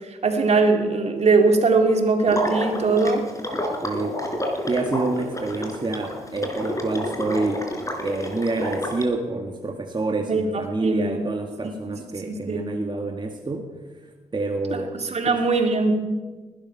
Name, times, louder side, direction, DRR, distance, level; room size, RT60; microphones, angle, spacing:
voice 1, 0.2-3.2 10.3-10.4 10.8-11.2 12.3-12.7 15.1-15.9, right 3 dB, 55° right, 4 dB, 2.7 m, -20 dB
Water / Liquid, 2.3-9.0, left 1 dB, 25° left, 4.1 m, -29 dB
voice 2, 3.8-4.2 4.7-7.6 8.0-13.7 14.3-14.9, right 2 dB, 35° right, 3 dB, 1.9 m, -27 dB
19.5 x 12.0 x 5.9 m, 1.3 s
supercardioid pair, 50°, 13 cm